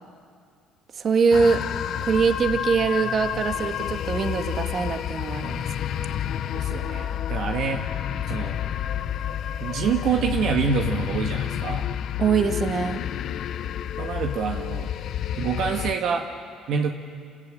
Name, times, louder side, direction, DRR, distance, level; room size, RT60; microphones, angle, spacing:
voice 1, 1.0-1.6 2.0-5.7 12.2-13.0, right 5 dB, 50° right, 6 dB, 1.9 m, -23 dB
sound 1, 1.3-15.9, left 10 dB, 60° left, 0.8 m, -29 dB
voice 2, 6.5-8.0 8.3-8.6 9.6-11.9 14.0-14.9 15.4-16.3 16.7-16.9, right 6 dB, 65° right, 3 dB, 1.6 m, -26 dB
28.0 x 14.0 x 8.9 m, 2.2 s
supercardioid pair, 70°, 0 cm